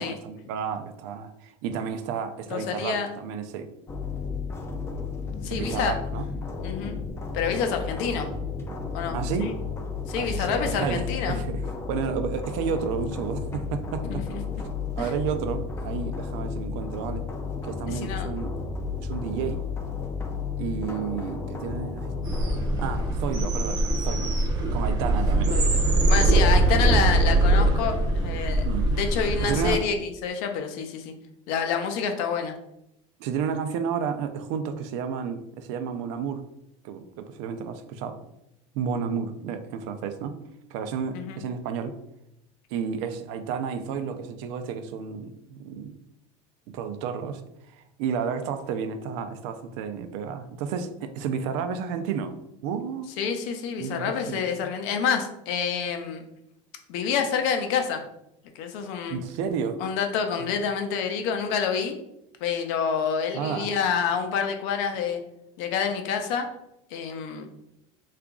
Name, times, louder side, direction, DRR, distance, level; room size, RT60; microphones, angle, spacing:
voice 1, 0.0-3.7 5.5-6.3 9.1-9.5 10.2-11.6 11.9-14.3 14.6-14.7 15.0-17.2 17.6-18.6 19.0-19.7 20.6-22.1 22.8-24.3 24.7-25.7 28.6-28.9 29.4-29.8 33.2-36.4 36.8-38.2 38.7-40.4 40.7-42.0 42.7-46.0 46.7-47.4 47.7-52.3 52.6-53.1 53.8-54.7 59.1-59.8 60.4-60.6 63.3-63.7, right 7 dB, 70° right, 9 dB, 0.4 m, -31 dB
voice 2, 2.5-3.1 5.4-5.9 6.6-7.0 7.3-8.3 8.9-9.5 10.1-11.4 14.0-14.4 15.0-15.1 17.9-18.3 25.5-25.8 26.1-28.7 29.0-31.1 31.5-32.5 41.1-41.4 53.2-56.2 56.9-58.0 58.6-59.2 59.8-61.9 62.4-65.2 65.6-66.5 66.9-67.5, left 6 dB, 65° left, 5 dB, 0.5 m, -28 dB
sound 1, 3.9-23.1, left 5 dB, 15° left, 0.4 m, -33 dB
sound 2, 22.2-29.8, right 2 dB, 25° right, 0.6 m, -22 dB
2.9 x 2.4 x 3.6 m, 0.83 s
supercardioid pair, 140°, 16 cm